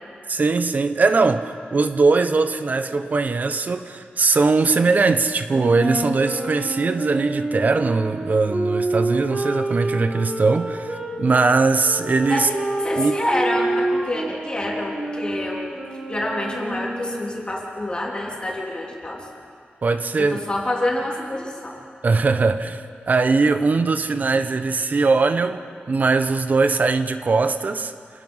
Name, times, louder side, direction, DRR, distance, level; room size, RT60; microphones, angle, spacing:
voice 1, 0.3-12.5 13.0-13.1 19.8-20.4 22.0-27.9, right 4 dB, 50° right, 10 dB, 1.0 m, -20 dB
sound 1, 5.5-11.1 11.8-17.3, right 2 dB, 35° right, 4.9 m, -28 dB
voice 2, 12.8-15.6 16.1-19.2 20.2-21.8, left 1 dB, 25° left, -2 dB, 3.5 m, -27 dB
27.5 x 19.0 x 5.6 m, 2.3 s
wide cardioid pair, 140°, 4 cm